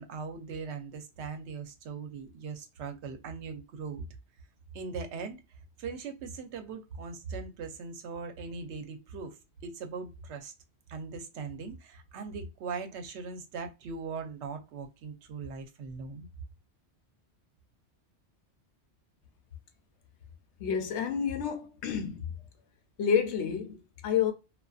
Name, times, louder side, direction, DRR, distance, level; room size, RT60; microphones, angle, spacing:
voice 1, 0.0-4.0 4.7-5.4 5.8-10.5 10.9-16.3, right 5 dB, 80° right, 0.9 m, -40 dB
voice 2, 20.6-22.3 23.0-24.3, left 7 dB, 80° left, 0.9 m, -29 dB
2.5 x 2.3 x 2.3 m
omnidirectional pair, 1.1 m